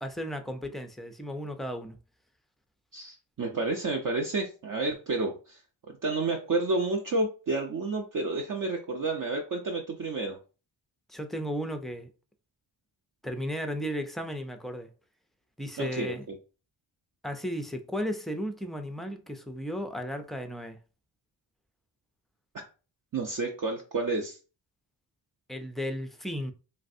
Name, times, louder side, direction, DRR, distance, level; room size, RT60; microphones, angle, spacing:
voice 1, 0.0-2.0 11.1-12.1 13.2-14.9 15.6-16.3 17.2-20.8 25.5-26.5, equal, ahead, 0.3 m, -34 dB
voice 2, 2.9-5.6 6.0-10.4 15.8-16.4 22.5-22.6 23.1-24.4, right 3 dB, 45° right, 0.6 m, -30 dB
3.2 x 2.5 x 2.5 m
cardioid pair, 80°, 46 cm